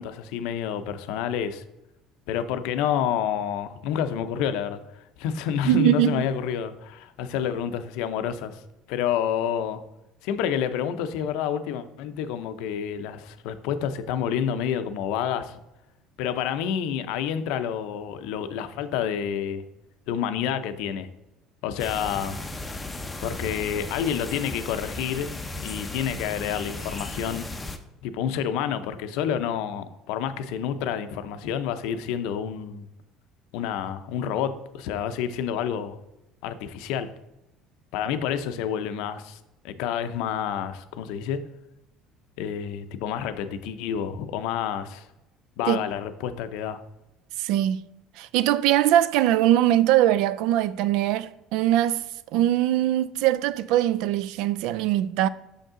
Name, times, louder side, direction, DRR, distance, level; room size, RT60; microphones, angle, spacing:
voice 1, 0.0-1.6 2.3-8.6 8.9-9.8 10.2-15.6 16.2-19.6 20.1-21.1 21.6-22.4 23.2-25.3 25.6-27.4 28.0-32.8 33.5-36.0 36.4-37.1 37.9-39.4 39.6-41.4 42.4-45.1 45.6-46.8, left 8 dB, 80° left, 0.6 m, -29 dB
voice 2, 5.7-6.2 45.7-45.8 47.4-47.8 48.2-52.0 52.3-55.3, right 13 dB, 75° right, 0.3 m, -21 dB
sound 1, 21.8-27.8, left 2 dB, 10° left, 0.6 m, -35 dB
6.5 x 5.3 x 3.7 m
cardioid pair, 140°, 0 cm